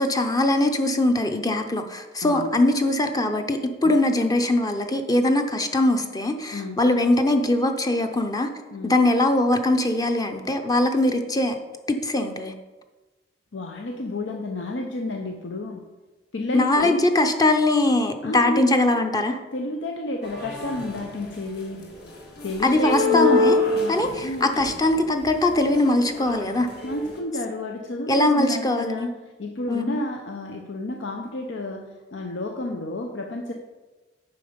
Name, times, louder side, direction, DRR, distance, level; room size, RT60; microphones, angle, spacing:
voice 1, 0.0-8.5 8.8-11.6 11.9-12.5 16.5-19.4 22.6-23.6 23.9-26.7 28.1-29.1 29.7-30.0, left 1 dB, 20° left, 5 dB, 0.6 m, -21 dB
voice 2, 6.5-6.8 8.7-9.0 13.5-15.9 16.3-17.0 18.2-18.7 19.5-21.9 22.4-24.5 26.8-29.1 29.4-33.5, left 1 dB, 85° left, 2 dB, 0.7 m, -30 dB
sound 1, 20.2-21.4 21.8-27.2, left 3 dB, 60° left, 1.8 m, -26 dB
9.1 x 5.8 x 5.1 m, 1.2 s
head